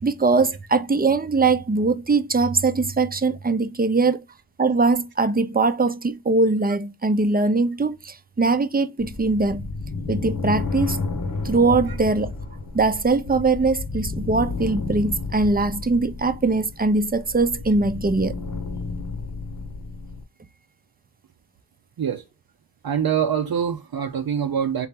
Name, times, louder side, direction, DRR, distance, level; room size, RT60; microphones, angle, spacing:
voice 1, 0.0-4.2 4.6-9.7 10.1-11.0 11.4-12.3 12.7-18.3, right 3 dB, 20° right, 0.6 m, -21 dB
sound 1, 9.0-20.2, left 3 dB, 50° left, 1.0 m, -31 dB
voice 2, 22.8-24.9, right 8 dB, 60° right, 0.7 m, -24 dB
3.8 x 2.9 x 3.6 m
cardioid pair, 50°, 42 cm